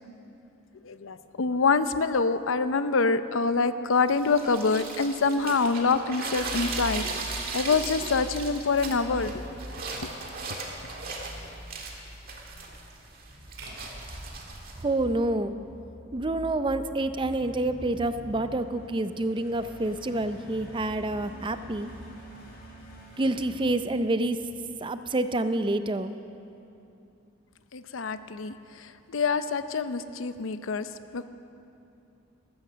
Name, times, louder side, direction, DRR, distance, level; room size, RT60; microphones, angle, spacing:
voice 1, 0.8-7.1 7.5-9.4 10.0-10.1 10.5-10.6 27.7-30.9 31.1-31.2, left 4 dB, 80° left, 12 dB, 0.6 m, -26 dB
sound 1, 4.1-14.8, right 3 dB, 45° right, 1.9 m, -37 dB
sound 2, 6.3-24.4, equal, 55° left, 3.6 m, -45 dB
sound 3, 13.6-15.8, right 1 dB, 90° right, 3.2 m, -46 dB
voice 2, 14.8-15.5 16.1-21.9 23.2-24.4 24.8-26.1, right 2 dB, 25° right, 11 dB, 0.5 m, -28 dB
13.5 x 13.5 x 6.9 m, 2.8 s
head